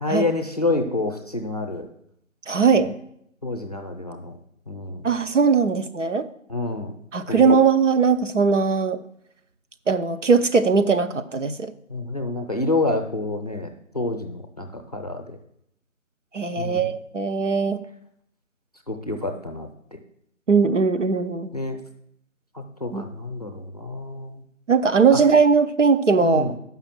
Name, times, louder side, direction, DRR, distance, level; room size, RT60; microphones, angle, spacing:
voice 1, 0.0-1.9 2.7-2.8 3.4-4.3 4.7-5.1 6.5-6.9 7.3-7.6 11.9-15.4 16.6-16.9 18.9-20.0 21.5-21.8 22.8-24.4 25.1-25.2 26.2-26.5, left 2 dB, 30° left, 4 dB, 0.7 m, -28 dB
voice 2, 2.5-2.9 5.0-6.3 7.1-9.0 9.9-11.7 16.3-17.8 20.5-21.5 22.9-23.1 24.7-26.4, right 5 dB, 65° right, 9 dB, 0.7 m, -19 dB
6.9 x 5.8 x 7.4 m, 0.73 s
figure-of-eight pair, 160°, 41 cm